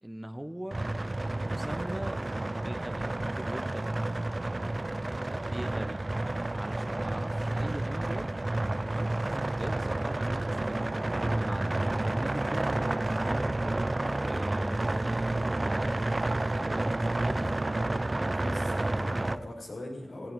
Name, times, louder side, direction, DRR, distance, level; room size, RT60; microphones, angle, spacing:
voice 1, 0.0-0.9 1.3-2.2 2.5-4.1 5.3-6.0 6.5-8.3 8.8-9.2 9.6-10.9 11.3-11.7 12.1-13.9 14.2-17.6 17.9-18.6 19.0-19.5, right 1 dB, 15° right, 10 dB, 1.1 m, -42 dB
sound 1, 0.7-19.4, right 2 dB, 35° right, 0.7 m, -30 dB
voice 2, 18.4-20.3, left 1 dB, 75° left, -3 dB, 5.6 m, -41 dB
17.5 x 15.0 x 5.3 m, 1.1 s
cardioid pair, 45°, 0 cm